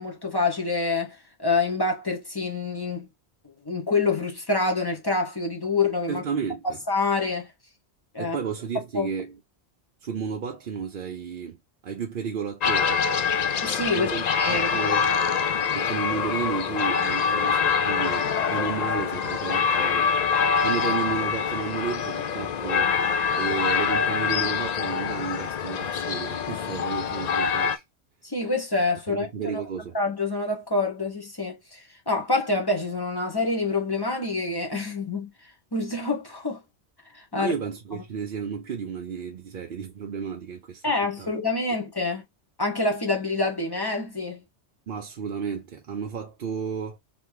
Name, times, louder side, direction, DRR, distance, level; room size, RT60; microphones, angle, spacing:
voice 1, 0.0-3.1 3.6-6.2 6.9-7.5 8.1-8.4 8.9-9.1 13.6-14.1 14.4-14.7 28.2-29.3 29.5-29.6 29.9-35.3 35.7-36.6 37.1-37.5 40.8-42.2 42.6-44.4, left 3 dB, 20° left, 1.0 m, -26 dB
voice 2, 6.1-6.8 8.2-9.4 10.0-11.6 11.8-13.1 13.9-14.2 14.5-15.0 15.7-20.1 20.6-27.8 29.1-30.0 37.3-40.8 41.2-41.3 44.9-47.0, right 6 dB, 55° right, 0.8 m, -32 dB
sound 1, 12.6-27.8, left 6 dB, 55° left, 0.4 m, -25 dB
3.4 x 2.9 x 4.7 m
omnidirectional pair, 1.2 m